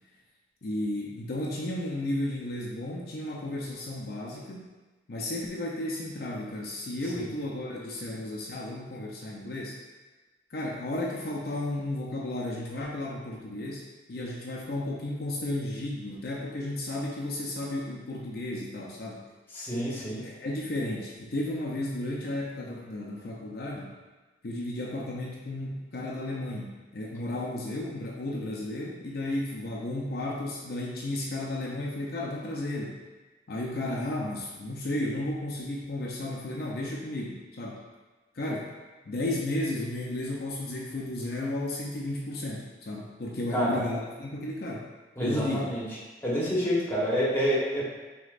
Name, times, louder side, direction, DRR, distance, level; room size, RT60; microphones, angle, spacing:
voice 1, 0.6-4.7 5.1-9.8 10.5-19.2 20.2-24.0 24.4-33.0 33.5-37.8 38.3-38.7 39.1-44.9 45.2-45.6, left 1 dB, 60° left, -3 dB, 0.6 m, -33 dB
voice 2, 19.5-20.2 43.5-43.7 45.2-45.8 46.2-47.8, equal, 15° left, -6 dB, 1.2 m, -28 dB
6.2 x 3.1 x 2.5 m, 1.2 s
head